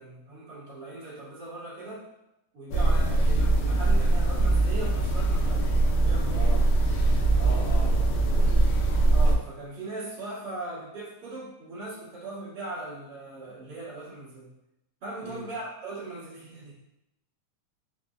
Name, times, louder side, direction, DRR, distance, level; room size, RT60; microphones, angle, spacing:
voice 1, 0.0-2.0 2.5-6.7 7.1-7.4 9.1-14.5 15.0-16.7, right 2 dB, 35° right, -9 dB, 1.0 m, -39 dB
sound 1, 2.7-9.4, right 2 dB, 80° left, 1.9 m, -22 dB
voice 2, 6.3-6.6 7.4-8.6 15.2-15.4, equal, 85° right, -5 dB, 1.3 m, -40 dB
4.6 x 2.6 x 2.4 m, 0.88 s
omnidirectional pair, 3.5 m